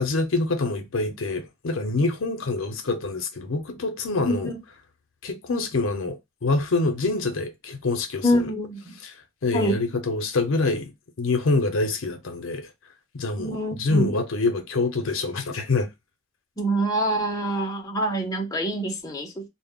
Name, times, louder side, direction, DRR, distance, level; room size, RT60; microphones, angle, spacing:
voice 1, 0.0-4.5 5.2-8.5 9.0-9.1 9.4-10.9 11.2-12.7 13.1-15.9, left 3 dB, 70° left, 0.6 m, -26 dB
voice 2, 4.2-4.6 8.2-9.0 9.5-9.8 13.4-14.2 16.6-19.4, right 1 dB, 15° left, 0.5 m, -25 dB
2.1 x 2.0 x 3.5 m
head